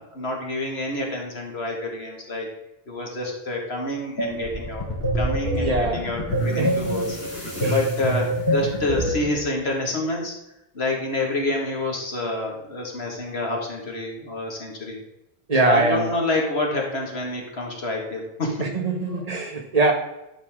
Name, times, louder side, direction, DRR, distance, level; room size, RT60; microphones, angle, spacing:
voice 1, 0.0-2.5 2.9-4.9 5.1-10.3 10.7-15.0 15.6-18.7 19.1-19.2, left 2 dB, 85° left, 0 dB, 2.2 m, -28 dB
sound 1, 4.2-9.3, right 1 dB, 70° left, 3.0 m, -25 dB
voice 2, 5.5-6.0 6.6-7.0 7.6-7.7 15.5-16.1 18.6-19.9, right 3 dB, 40° right, 3 dB, 1.5 m, -22 dB
11.0 x 7.0 x 3.7 m, 0.93 s
omnidirectional pair, 1.0 m